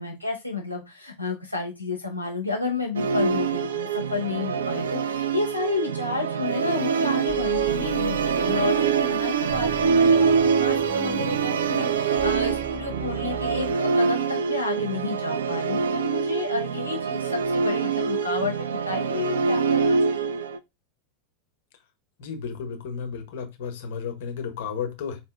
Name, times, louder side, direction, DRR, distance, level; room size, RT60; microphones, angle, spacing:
voice 1, 0.0-20.4, left 4 dB, 90° left, 0.7 m, -31 dB
Musical instrument, 2.9-20.6, right 6 dB, 70° right, 0.4 m, -25 dB
sound 1, 7.3-13.8, right 4 dB, 10° right, 0.5 m, -39 dB
voice 2, 22.2-25.2, left 6 dB, 55° left, 1.1 m, -33 dB
4.7 x 2.7 x 3.4 m
figure-of-eight pair, 85°, 0 cm